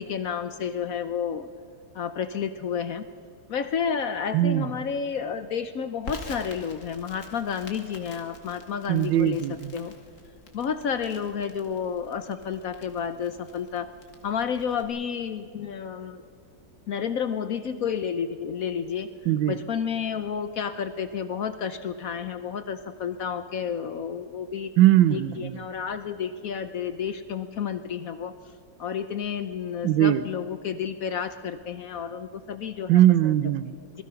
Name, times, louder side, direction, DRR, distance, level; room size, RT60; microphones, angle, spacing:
voice 1, 0.0-1.5 1.9-3.0 3.5-9.4 9.7-9.9 10.5-13.9 14.2-16.2 16.9-19.1 19.5-24.7 25.1-28.3 28.8-33.0, left 7 dB, 60° left, 10 dB, 1.0 m, -31 dB
voice 2, 4.3-4.7 8.9-9.7 19.2-19.6 24.8-25.6 29.8-30.2 32.9-34.0, right 13 dB, 85° right, 15 dB, 1.4 m, -21 dB
Crackle, 6.0-14.8, left 2 dB, 45° left, 2.1 m, -47 dB
26.5 x 19.5 x 5.7 m, 2.3 s
omnidirectional pair, 2.0 m